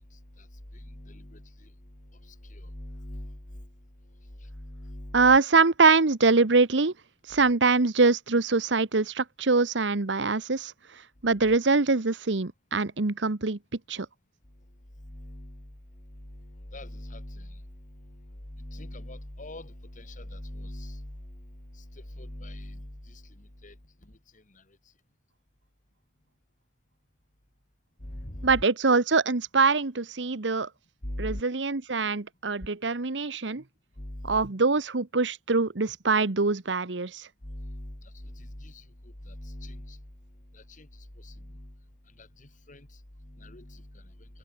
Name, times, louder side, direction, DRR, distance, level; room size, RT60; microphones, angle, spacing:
voice 1, 0.8-1.4 2.5-3.6 4.5-5.2 15.1-15.6 16.4-17.5 18.5-21.1 22.2-22.9 23.6-23.7 28.0-28.6 31.0-31.4 34.0-34.4 37.4-38.0 38.2-38.8 39.3-40.0 40.5-40.9 41.2-41.7 42.2-42.9 43.4-43.8, left 1 dB, 45° left, 2.7 m, -40 dB
voice 2, 5.1-6.9 7.3-10.7 11.2-13.6 13.9-14.1 28.4-30.7 31.2-33.6 34.2-37.3, right 4 dB, 85° right, 1.2 m, -23 dB
head